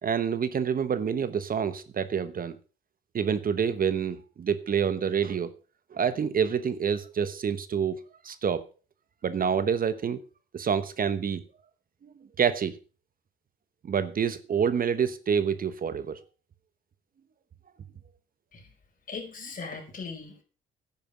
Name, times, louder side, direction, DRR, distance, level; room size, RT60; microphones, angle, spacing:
voice 1, 0.0-2.6 3.1-5.5 5.9-8.7 9.2-10.2 10.5-11.4 12.0-12.1 12.4-12.8 13.8-16.2, right 7 dB, 45° right, 1.1 m, -27 dB
voice 2, 19.1-20.4, left 4 dB, 45° left, 5.2 m, -39 dB
10.5 x 9.3 x 6.0 m
cardioid pair, 90°, 20 cm